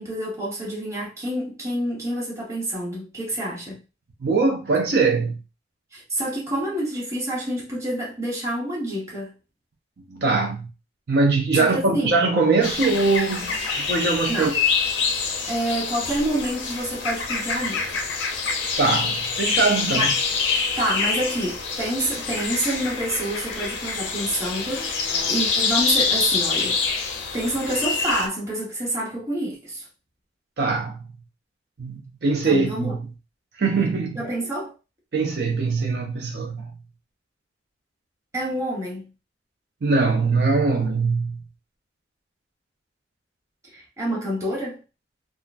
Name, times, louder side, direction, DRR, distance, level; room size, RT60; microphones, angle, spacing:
voice 1, 0.0-3.8 5.9-9.3 11.5-12.1 14.3-14.5 15.5-18.0 19.9-20.1 20.8-26.8 27.3-29.8 32.4-33.0 34.2-34.7 38.3-39.1 43.7-44.8, right 1 dB, 15° right, 1.1 m, -28 dB
voice 2, 4.2-5.4 10.1-10.7 11.1-14.5 18.8-20.1 30.6-31.1 31.8-33.0 33.6-34.2 35.1-36.7 39.8-41.4, right 3 dB, 60° right, 0.5 m, -22 dB
sound 1, 12.6-28.3, left 5 dB, 90° left, 0.6 m, -26 dB
3.6 x 2.0 x 2.5 m
head